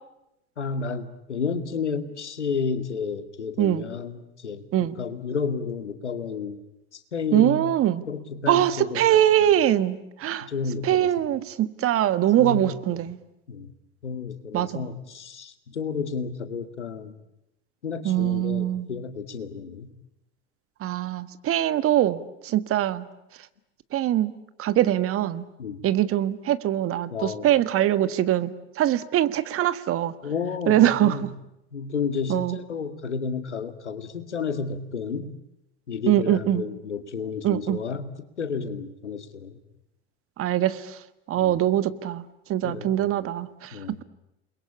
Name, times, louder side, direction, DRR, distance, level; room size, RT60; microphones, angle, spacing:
voice 1, 0.6-6.6 6.9-7.6 8.1-9.2 10.4-11.1 12.4-13.0 13.5-13.7 14.0-17.1 17.8-19.9 25.6-25.8 27.1-27.5 30.2-31.3 31.7-35.3 35.9-38.0 38.4-39.6 41.4-41.6 42.6-43.1 43.7-44.0, left 5 dB, 90° left, 10 dB, 2.1 m, -31 dB
voice 2, 7.3-8.0 8.5-10.5 10.8-13.2 14.5-14.9 18.0-18.9 20.8-23.1 23.9-24.3 24.6-25.4 25.8-30.1 30.7-31.3 32.3-32.6 36.1-36.6 37.4-37.8 40.4-40.9 41.3-42.2 42.5-43.7, right 12 dB, 40° right, 14 dB, 1.6 m, -23 dB
29.0 x 22.0 x 8.5 m, 0.89 s
hypercardioid pair, 85°, 34 cm